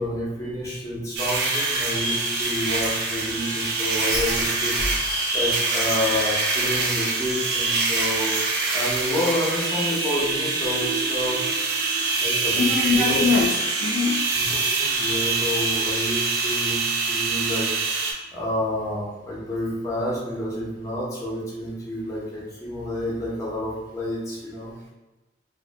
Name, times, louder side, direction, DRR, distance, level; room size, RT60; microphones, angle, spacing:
voice 1, 0.0-8.4 8.7-11.4 12.2-13.2 14.3-16.8 17.1-17.7 18.3-24.7, left 1 dB, 15° left, -6 dB, 0.6 m, -29 dB
sound 1, 1.2-18.1, right 3 dB, 60° right, 0.4 m, -25 dB
sound 2, 9.1-12.8, right 5 dB, 35° right, 0.7 m, -37 dB
voice 2, 12.6-14.3, left 5 dB, 65° left, -4 dB, 0.4 m, -23 dB
2.6 x 2.5 x 2.2 m, 1.1 s
head